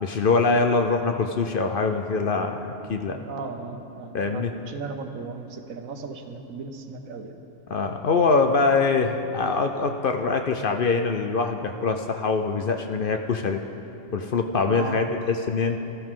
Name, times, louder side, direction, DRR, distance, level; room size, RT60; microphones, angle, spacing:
voice 1, 0.0-3.2 4.1-4.5 7.7-13.6 14.1-15.8, left 4 dB, 55° left, 5 dB, 0.7 m, -23 dB
voice 2, 3.1-7.4 14.7-15.0, right 4 dB, 85° right, 6 dB, 1.3 m, -36 dB
17.0 x 13.5 x 3.7 m, 2.9 s
omnidirectional pair, 1.4 m